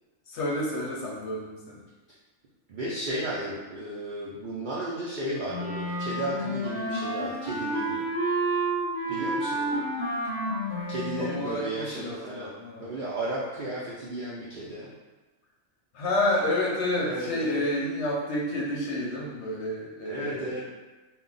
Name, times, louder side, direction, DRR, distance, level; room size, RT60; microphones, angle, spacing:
voice 1, 0.3-1.8 11.2-12.9 15.9-20.6, left 1 dB, 65° left, -3 dB, 0.8 m, -30 dB
voice 2, 2.7-8.0 9.1-9.9 10.9-12.5 12.8-14.9 17.0-17.6 20.0-20.6, right 1 dB, 80° right, -6 dB, 0.4 m, -34 dB
Wind instrument woodwind instrument, 5.5-11.4, right 1 dB, 25° left, 0.8 m, -30 dB
2.2 x 2.1 x 3.8 m, 1.2 s
omnidirectional pair, 1.4 m